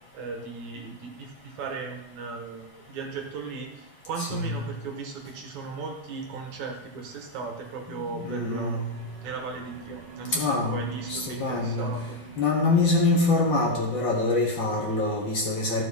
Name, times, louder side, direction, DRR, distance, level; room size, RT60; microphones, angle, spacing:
voice 1, 0.1-12.2, right 4 dB, 75° right, 1 dB, 3.0 m, -37 dB
voice 2, 4.2-4.5 7.9-8.9 10.3-10.8 11.1-11.9 12.4-15.8, left 3 dB, 45° left, -2 dB, 2.2 m, -25 dB
sound 1, 8.9-13.6, right 6 dB, 55° right, 1.3 m, -43 dB
15.0 x 6.7 x 4.3 m, 0.88 s
omnidirectional pair, 3.4 m